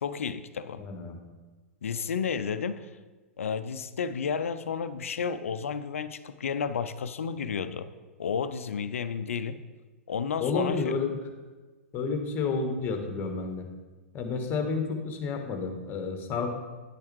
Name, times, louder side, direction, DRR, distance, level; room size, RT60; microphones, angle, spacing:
voice 1, 0.0-0.8 1.8-2.9 3.4-7.9 8.2-9.6 10.1-10.9, left 6 dB, 70° left, 13 dB, 0.5 m, -32 dB
voice 2, 0.8-1.2 10.4-11.2 11.9-13.6 14.1-16.5, left 4 dB, 30° left, 5 dB, 1.4 m, -30 dB
9.7 x 8.6 x 3.2 m, 1.3 s
figure-of-eight pair, 105°, 8 cm